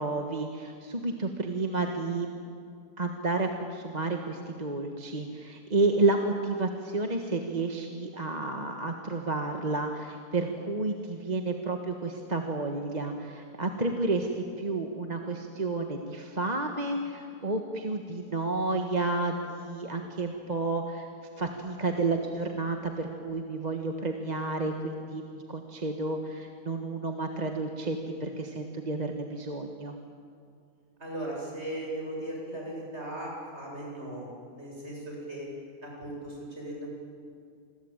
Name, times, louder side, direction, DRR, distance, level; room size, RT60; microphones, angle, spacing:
voice 1, 0.0-2.3 3.0-21.1 21.4-25.2 25.5-30.0, right 3 dB, 30° right, 3 dB, 1.6 m, -31 dB
voice 2, 31.0-34.2 34.5-35.5 35.8-36.9, right 1 dB, 45° right, -2 dB, 8.3 m, -37 dB
28.0 x 21.5 x 9.0 m, 2.4 s
omnidirectional pair, 1.6 m